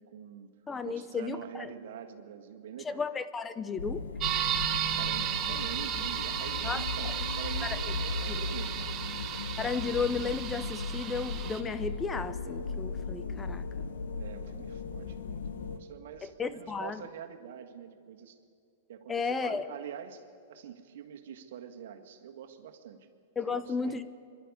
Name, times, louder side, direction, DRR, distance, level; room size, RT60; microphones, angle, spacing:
voice 1, 0.0-0.5 0.8-3.0 4.9-9.2 14.2-18.4 18.9-20.2 20.5-23.1 23.4-24.0, right 9 dB, 70° right, 1.7 m, -45 dB
voice 2, 0.7-1.7 2.8-4.0 6.6-6.8 7.6-7.8 8.3-8.4 9.6-13.6 16.2-17.0 19.1-19.6 23.4-24.0, left 5 dB, 15° left, 0.7 m, -34 dB
sound 1, 3.8-15.8, left 4 dB, 80° left, 1.2 m, -37 dB
sound 2, 4.2-11.6, right 9 dB, 35° right, 1.5 m, -34 dB
23.5 x 12.0 x 9.6 m
hypercardioid pair, 120°, 0 cm